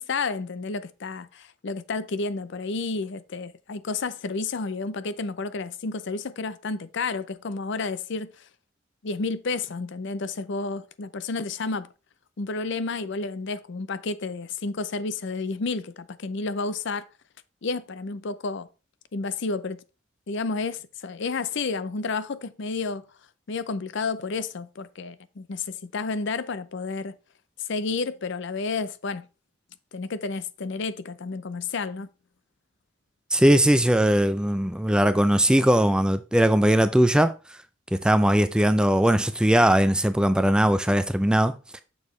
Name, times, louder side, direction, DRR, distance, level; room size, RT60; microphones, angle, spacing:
voice 1, 0.0-8.3 9.0-11.9 12.4-17.1 17.6-18.7 19.1-19.8 20.3-23.0 23.5-27.2 27.7-29.3 29.9-32.1, left 4 dB, 60° left, 0.5 m, -31 dB
voice 2, 33.3-37.3 38.0-41.8, right 1 dB, 5° right, 0.4 m, -20 dB
7.0 x 6.4 x 3.1 m
head